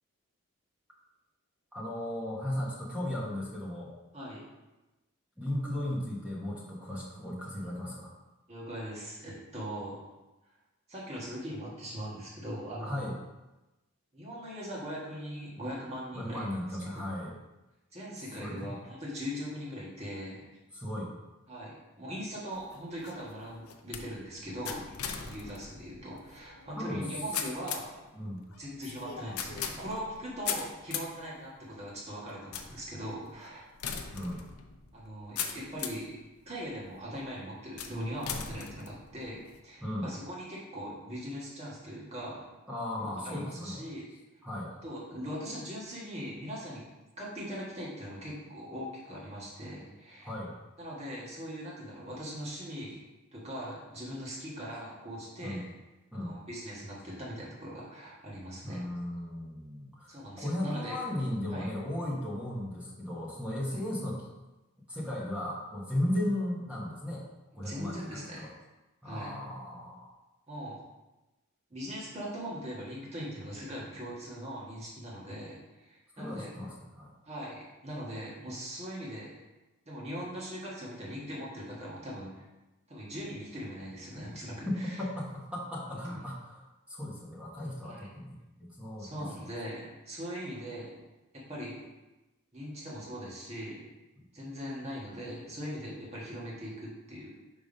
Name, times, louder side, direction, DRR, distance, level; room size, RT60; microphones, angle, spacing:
voice 1, 1.7-3.9 5.4-8.1 12.8-13.2 16.1-17.4 18.4-18.8 20.7-21.1 26.8-27.1 28.1-28.4 34.1-34.4 39.8-40.1 42.7-43.8 44.4-44.7 50.2-50.5 55.4-55.6 56.1-56.3 58.6-64.3 64.9-67.2 67.6-68.5 69.0-70.1 76.1-77.1 84.6-84.7 85.0-88.3 88.8-89.3, left 1 dB, 5° right, -5 dB, 1.0 m, -36 dB
voice 2, 8.5-10.0 10.9-13.1 14.1-16.5 16.9-17.0 17.9-20.4 21.5-24.9 25.2-27.9 28.6-33.6 34.9-36.1 36.4-39.4 39.6-42.5 43.0-44.1 44.8-46.8 47.2-50.3 50.8-53.0 53.3-55.6 56.1-58.8 60.1-61.0 61.5-61.7 67.6-68.5 69.0-69.3 70.5-70.8 71.7-76.5 77.2-79.3 79.9-82.4 82.9-85.0 86.1-86.2 87.8-88.0 89.0-91.0 91.3-91.8 92.5-93.9 94.3-97.3, equal, 30° right, -5 dB, 1.5 m, -40 dB
sound 1, 22.5-36.1 36.7-37.2 37.8-39.6, left 7 dB, 80° left, 0.6 m, -40 dB
5.1 x 3.5 x 5.3 m, 1.0 s
head